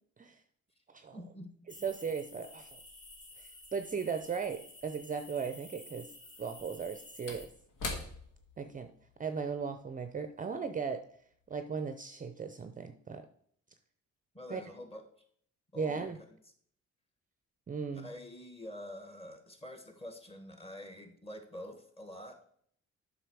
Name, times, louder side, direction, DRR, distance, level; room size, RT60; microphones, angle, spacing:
voice 1, 1.1-1.7 14.3-15.0 15.7-16.2 17.9-22.4, left 1 dB, 20° left, 5 dB, 1.6 m, -46 dB
sound 1, 1.7-7.5, left 2 dB, 35° left, 2.7 m, -52 dB
voice 2, 1.8-2.8 3.4-6.1 6.4-7.5 8.6-8.9 9.2-11.0 11.5-13.2 14.5-14.6 15.8-16.2 17.7-18.1, right 6 dB, 25° right, 9 dB, 0.6 m, -37 dB
Slam / Wood, 4.8-4.9 6.4-11.1 11.4-11.6, left 2 dB, 85° left, 1.8 m, -45 dB
7.9 x 5.7 x 4.7 m, 0.62 s
cardioid pair, 90°, 30 cm